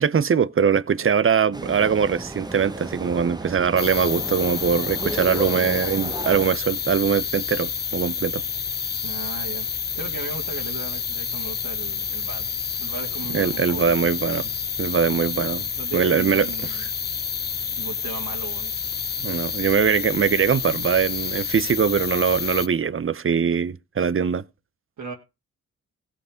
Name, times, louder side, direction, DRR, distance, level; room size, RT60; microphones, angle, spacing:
voice 1, 0.0-8.4 13.3-14.5 14.8-16.5 19.2-24.4, right 7 dB, 40° right, 0.7 m, -22 dB
sound 1, 1.5-6.5, right 2 dB, 10° right, 1.1 m, -33 dB
sound 2, 3.8-22.7, left 6 dB, 30° left, 0.5 m, -29 dB
voice 2, 9.0-9.7 9.9-12.5 12.8-14.1 15.8-16.9 17.3-17.4 17.7-18.7 25.0-25.1, right 5 dB, 75° right, 2.3 m, -36 dB
16.5 x 5.6 x 5.1 m
cardioid pair, 55°, 33 cm